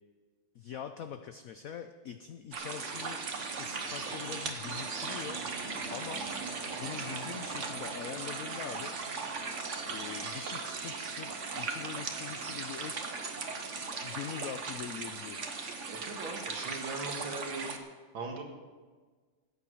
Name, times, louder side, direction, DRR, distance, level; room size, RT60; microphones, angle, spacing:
voice 1, 0.5-3.2 3.6-5.4 5.9-8.9 9.9-13.1 14.0-15.5, left 8 dB, 80° left, 8 dB, 0.7 m, -43 dB
sound 1, 2.5-17.8, right 4 dB, 45° right, 1.2 m, -38 dB
Wind instrument woodwind instrument, 7.0-14.7, right 4 dB, 65° left, 1.9 m, -51 dB
voice 2, 15.9-17.7 18.1-18.4, right 3 dB, 75° right, 2 dB, 2.6 m, -39 dB
14.0 x 8.8 x 6.3 m, 1.4 s
omnidirectional pair, 2.2 m